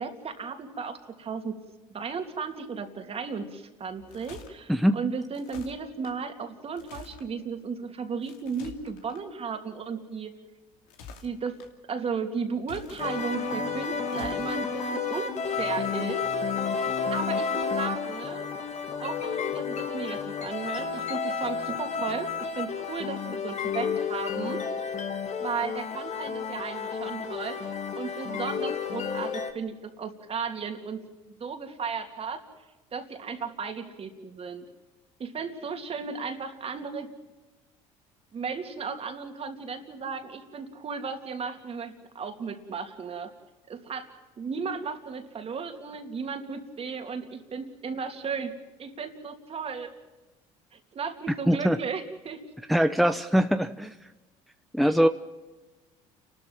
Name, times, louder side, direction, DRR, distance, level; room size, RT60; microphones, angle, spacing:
voice 1, 0.0-1.6 1.9-10.3 11.2-11.6 11.9-16.2 16.8-18.5 19.0-24.6 25.4-32.4 32.9-34.7 35.2-37.1 38.3-43.3 43.7-44.1 44.4-48.5 48.8-49.9 50.7-52.4 54.8-54.9, right 5 dB, 45° right, 6 dB, 3.0 m, -35 dB
sound 1, 3.9-4.5 5.3-6.1 6.7-7.3 8.2-9.2 10.7-11.7 12.6-13.5 14.1-14.5, left 6 dB, 80° left, 2.6 m, -47 dB
sound 2, 13.0-29.5, left 6 dB, 50° left, 2.2 m, -31 dB
voice 2, 51.5-51.8 52.7-53.9 54.7-55.1, equal, ahead, 8 dB, 0.8 m, -22 dB
30.0 x 13.0 x 7.5 m, 1.2 s
supercardioid pair, 80°, 14 cm